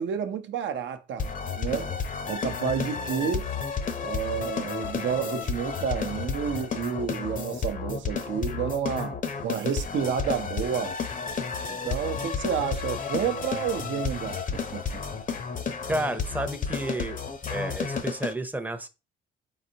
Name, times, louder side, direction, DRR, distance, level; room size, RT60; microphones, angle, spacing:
voice 1, 0.0-1.9 2.3-3.5 4.0-11.0 11.7-15.0, right 7 dB, 70° right, 0.7 m, -30 dB
sound 1, 1.2-18.3, left 5 dB, 40° left, 0.7 m, -32 dB
voice 2, 15.9-17.2 17.5-18.9, right 1 dB, 10° right, 0.6 m, -31 dB
4.2 x 4.0 x 2.8 m
cardioid pair, 90°, 20 cm